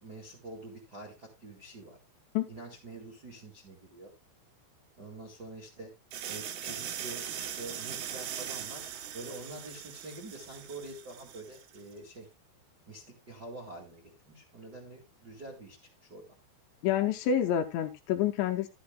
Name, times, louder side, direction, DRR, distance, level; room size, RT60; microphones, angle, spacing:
voice 1, 0.0-2.0 2.5-4.1 5.0-5.9 6.3-8.8 9.1-12.3 12.8-16.2, right 2 dB, 55° right, -2 dB, 1.1 m, -46 dB
sound 1, 6.1-11.8, right 9 dB, 70° right, 2.4 m, -40 dB
voice 2, 16.8-18.7, left 9 dB, 75° left, 5 dB, 2.8 m, -28 dB
12.5 x 11.5 x 2.3 m, 0.22 s
omnidirectional pair, 5.7 m